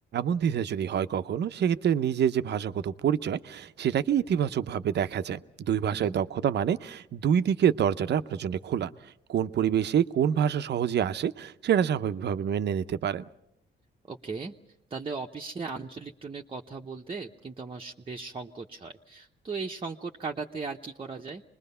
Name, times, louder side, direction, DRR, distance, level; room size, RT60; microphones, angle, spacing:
voice 1, 0.1-5.4 5.7-8.9 9.3-13.2, right 9 dB, 60° right, 11 dB, 0.8 m, -26 dB
voice 2, 14.1-14.5 14.9-21.4, right 4 dB, 25° right, 0 dB, 0.9 m, -37 dB
26.0 x 21.0 x 5.6 m, 0.79 s
cardioid pair, 90°, 20 cm